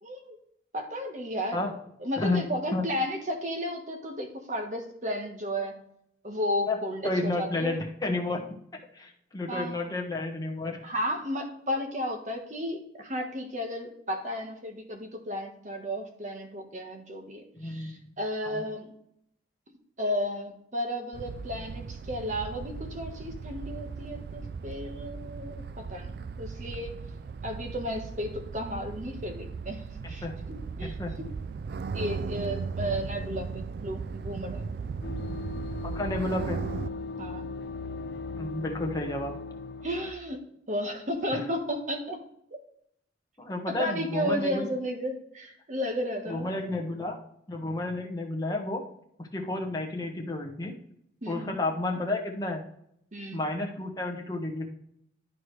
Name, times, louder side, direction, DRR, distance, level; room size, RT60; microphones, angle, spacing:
voice 1, 0.0-0.4 0.7-1.6 2.0-5.7 6.2-7.8 9.5-9.8 10.8-18.9 20.0-26.9 27.4-31.3 31.9-34.7 37.2-37.5 39.8-40.4 40.7-42.2 43.7-46.5 51.2-51.6 53.1-53.4, equal, 40° right, 3 dB, 1.4 m, -33 dB
voice 2, 7.0-8.4 8.9-10.8 17.6-18.1 18.4-18.6 30.0-30.4 30.8-31.2 35.8-36.6 38.4-39.3 41.3-41.4 43.4-44.7 46.3-47.2 47.5-48.8 49.2-50.8 51.3-52.6 53.3-54.7, left 2 dB, 20° left, 1 dB, 1.2 m, -31 dB
sound 1, 21.1-36.9, right 5 dB, 55° right, 0.3 m, -37 dB
sound 2, 35.0-40.1, left 3 dB, 65° left, 0.6 m, -38 dB
11.5 x 4.7 x 3.2 m, 0.71 s
head